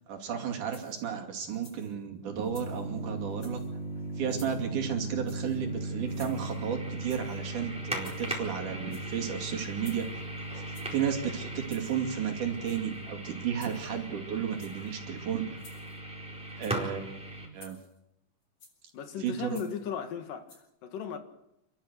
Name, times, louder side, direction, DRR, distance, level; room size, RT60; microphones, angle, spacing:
voice 1, 0.1-3.6 4.2-10.1 10.9-15.6 16.6-17.2 17.5-17.8 19.2-19.6, right 8 dB, 70° right, 4.0 m, -33 dB
sound 1, 0.7-1.1 1.5-1.9 2.4-2.9 3.3-3.7 4.3-4.7 5.2-5.6 6.1-6.7 7.1-7.4 7.9-8.5 8.8-9.2 9.8-10.2 10.7-11.0 11.6-12.0 12.5-13.0 13.6-14.1 14.5-14.9 15.6-16.0 16.5-16.9 17.6-18.0 18.6-18.9 19.5-19.9 20.5-20.6, left 2 dB, 45° left, 8.9 m, -55 dB
sound 2, 2.3-17.5, right 1 dB, ahead, 4.1 m, -38 dB
voice 2, 18.9-21.2, left 8 dB, 85° left, 3.4 m, -37 dB
29.0 x 13.0 x 8.1 m
omnidirectional pair, 3.8 m